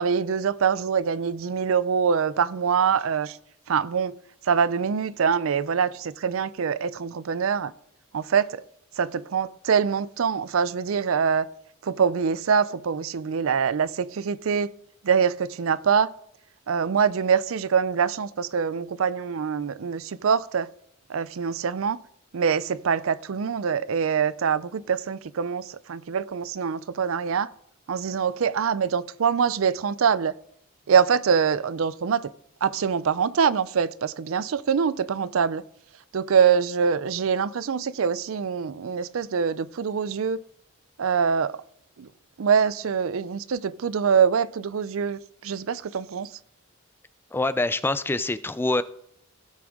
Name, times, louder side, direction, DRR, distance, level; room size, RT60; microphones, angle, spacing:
voice 1, 0.0-3.4 3.7-4.2 4.4-7.7 8.1-8.6 9.0-11.5 11.8-14.7 15.0-16.1 16.7-20.7 21.1-22.0 22.3-27.5 27.9-30.4 30.9-32.3 32.6-35.6 36.1-40.4 41.0-41.6 42.0-42.1 42.4-46.3, right 6 dB, 70° right, 0.5 m, -24 dB
voice 2, 47.3-48.8, left 2 dB, 10° left, 0.3 m, -25 dB
16.5 x 6.0 x 3.7 m
head